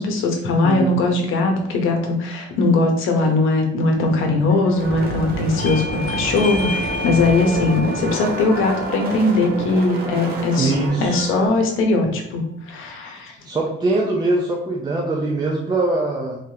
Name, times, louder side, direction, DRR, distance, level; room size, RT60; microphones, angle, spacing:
voice 1, 0.0-10.7 11.0-13.3, left 2 dB, 75° left, 3 dB, 1.0 m, -20 dB
sound 1, 3.9-11.5, right 3 dB, 70° right, 1.0 m, -33 dB
sound 2, 4.7-10.9, right 1 dB, 45° right, 1.0 m, -30 dB
Bell / Doorbell, 5.6-10.8, left 2 dB, 35° left, 0.8 m, -31 dB
voice 2, 10.6-11.2 13.4-16.4, right 2 dB, 20° right, -2 dB, 0.6 m, -22 dB
3.7 x 3.4 x 2.8 m, 0.81 s
cardioid pair, 135°, 21 cm